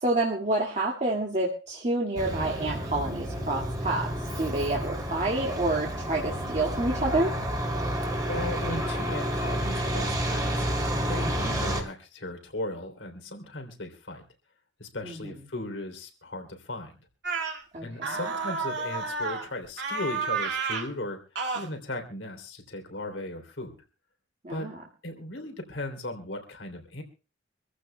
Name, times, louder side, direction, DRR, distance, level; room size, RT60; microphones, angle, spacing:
voice 1, 0.0-7.3 15.0-15.3 17.7-18.2 24.4-24.8, right 2 dB, 35° right, -2 dB, 2.0 m, -28 dB
Truck, 2.2-11.8, equal, 20° right, 2.9 m, -30 dB
voice 2, 8.3-14.2 14.8-17.0 17.4-17.5 17.8-21.2 21.5-23.8 24.5-24.7 25.0-27.0, left 1 dB, 70° left, 5 dB, 3.3 m, -37 dB
sound 1, 17.2-17.6 18.0-19.5 19.8-20.9 21.4-21.7, right 4 dB, 60° right, 2.3 m, -30 dB
26.0 x 15.0 x 2.3 m, 0.35 s
head